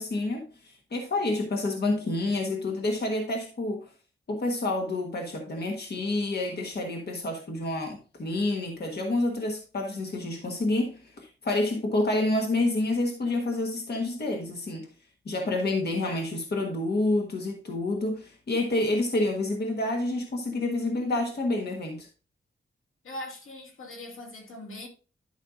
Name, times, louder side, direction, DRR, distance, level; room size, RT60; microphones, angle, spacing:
voice 1, 0.0-3.9 4.3-14.9 15.2-22.1, left 2 dB, 55° left, 1.4 m, -28 dB
voice 2, 23.0-24.9, left 1 dB, 85° left, 2.3 m, -40 dB
11.5 x 5.7 x 2.6 m
wide cardioid pair, 125°, 21 cm